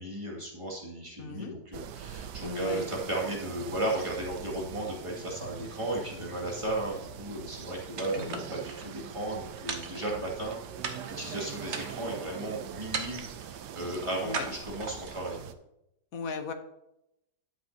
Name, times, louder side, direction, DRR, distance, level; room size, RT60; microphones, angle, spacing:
voice 1, 0.0-10.6 10.8-15.4, right 1 dB, 15° right, -4 dB, 2.5 m, -35 dB
voice 2, 1.2-1.5 2.4-2.9 8.1-8.4 14.2-14.4 16.1-16.5, left 4 dB, 55° left, 7 dB, 1.3 m, -36 dB
sound 1, 1.7-15.5, right 9 dB, 75° right, 1.2 m, -43 dB
sound 2, 8.0-8.9 9.7-10.5 10.8-11.3 11.7-12.2 12.9-13.5 14.3-15.2, right 5 dB, 45° right, 1.1 m, -37 dB
12.0 x 7.7 x 2.9 m, 0.84 s
omnidirectional pair, 1.9 m